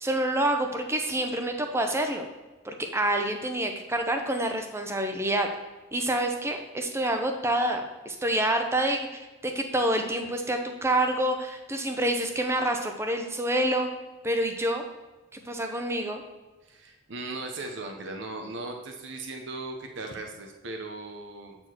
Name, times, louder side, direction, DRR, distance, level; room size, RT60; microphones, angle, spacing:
voice 1, 0.0-2.2 2.6-5.5 5.9-13.9 14.2-14.8 15.3-16.2, right 1 dB, 15° right, 4 dB, 0.7 m, -27 dB
voice 2, 16.6-21.6, right 2 dB, 60° right, 3 dB, 0.9 m, -38 dB
8.1 x 4.4 x 4.4 m, 1.2 s
head